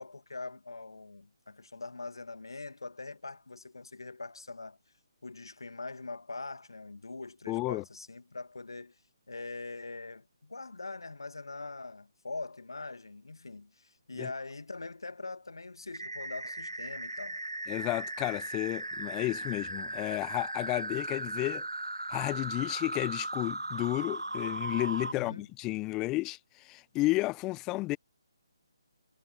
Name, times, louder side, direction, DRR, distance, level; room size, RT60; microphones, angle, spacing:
voice 1, 0.0-4.8 5.2-9.0 9.3-17.4 25.1-25.5, left 3 dB, 70° left, 2.1 m, -43 dB
voice 2, 7.5-7.8 14.2-14.3 17.7-21.6 22.1-28.0, left 20 dB, 15° left, 0.7 m, -32 dB
sound 1, 15.9-25.1, right 2 dB, 85° right, 1.9 m, -37 dB
figure-of-eight pair, 145°, 2 cm